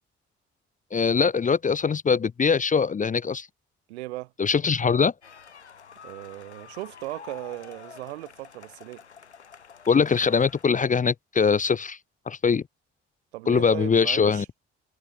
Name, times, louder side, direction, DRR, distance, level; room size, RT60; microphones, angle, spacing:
voice 1, 0.9-3.5 4.4-5.1 9.9-12.0 12.3-12.6 13.5-14.4, left 5 dB, 25° left, 0.6 m, -22 dB
voice 2, 3.9-4.3 6.0-9.0 13.3-14.5, right 19 dB, 75° right, 2.1 m, -37 dB
sound 1, 5.2-10.6, left 6 dB, 90° left, 1.4 m, -48 dB
figure-of-eight pair, 40°, 33 cm